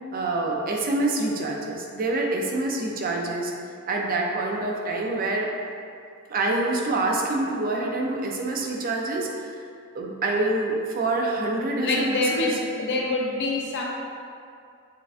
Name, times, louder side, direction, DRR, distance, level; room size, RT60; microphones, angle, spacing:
voice 1, 0.1-3.5 3.9-5.5 6.3-9.5 9.9-12.6, right 2 dB, 40° right, 0 dB, 0.5 m, -26 dB
voice 2, 11.8-13.8, left 2 dB, 55° left, -2 dB, 0.6 m, -26 dB
6.5 x 2.3 x 2.5 m, 2.4 s
head